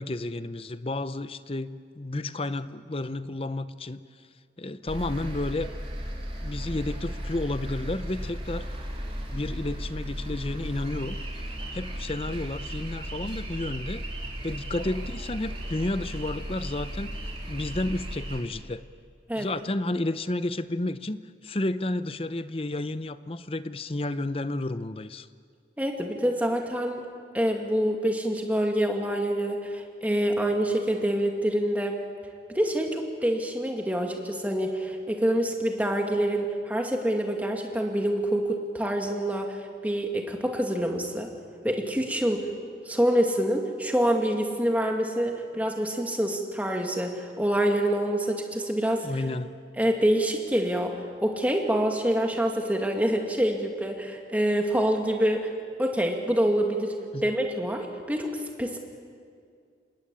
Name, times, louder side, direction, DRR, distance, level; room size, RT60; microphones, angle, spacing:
voice 1, 0.0-4.1 4.6-5.7 6.4-8.7 9.3-11.2 11.7-14.1 14.4-17.2 17.5-18.8 19.4-25.3 49.0-49.5 57.1-57.3, left 2 dB, 30° left, 13 dB, 0.7 m, -31 dB
sound 1, 4.9-18.4, equal, 30° right, 3.8 m, -35 dB
voice 2, 25.8-27.1 27.3-32.0 32.5-41.3 41.6-42.5 42.9-49.2 49.8-55.5 55.8-56.9 57.2-58.8, equal, 10° right, 2 dB, 2.3 m, -26 dB
27.0 x 20.5 x 8.6 m, 2.3 s
head